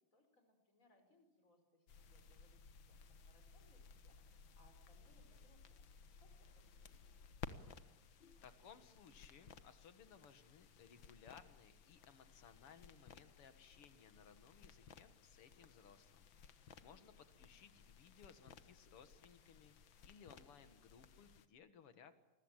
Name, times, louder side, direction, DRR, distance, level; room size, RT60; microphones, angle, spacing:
voice 1, 0.1-7.3 16.9-17.3, left 1 dB, 35° left, 6 dB, 5.6 m, -74 dB
sound 1, 1.9-21.5, left 6 dB, 60° left, 1.9 m, -59 dB
voice 2, 8.4-19.7 20.0-22.2, left 6 dB, 85° left, 11 dB, 2.6 m, -62 dB
29.0 x 21.0 x 9.0 m, 1.0 s
omnidirectional pair, 2.4 m